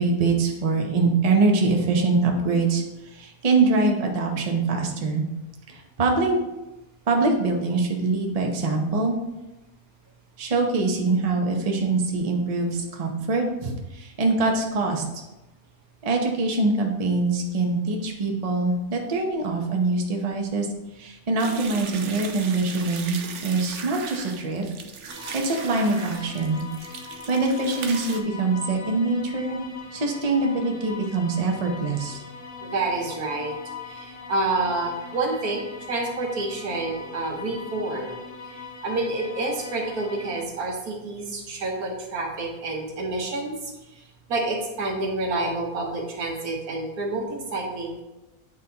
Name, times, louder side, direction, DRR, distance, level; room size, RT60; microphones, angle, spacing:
voice 1, 0.0-2.8 3.1-5.2 5.7-6.4 7.1-9.1 10.4-15.0 16.0-20.7 21.0-23.2 23.4-24.6 25.3-26.6 27.3-29.6 29.9-32.2, right 3 dB, 35° right, 1 dB, 0.7 m, -23 dB
sound 1, 21.4-28.2, right 6 dB, 65° right, 0.8 m, -38 dB
sound 2, 25.1-40.4, left 5 dB, 65° left, 1.3 m, -41 dB
voice 2, 32.6-33.6 33.8-38.1 38.5-43.5 44.3-48.0, right 2 dB, 90° right, 0 dB, 1.6 m, -28 dB
8.9 x 4.0 x 2.8 m, 1.0 s
omnidirectional pair, 1.5 m